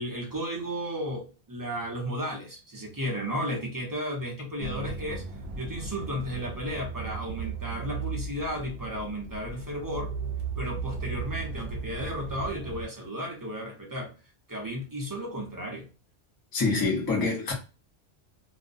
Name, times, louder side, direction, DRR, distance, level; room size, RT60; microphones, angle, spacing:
voice 1, 0.0-5.2 5.6-10.1 10.6-14.1 14.5-15.9, equal, 20° right, 0.6 m, -34 dB
sound 1, 4.6-12.9, right 5 dB, 65° right, 0.8 m, -36 dB
voice 2, 16.5-17.5, left 3 dB, 25° left, 0.6 m, -26 dB
2.5 x 2.1 x 2.5 m
omnidirectional pair, 1.2 m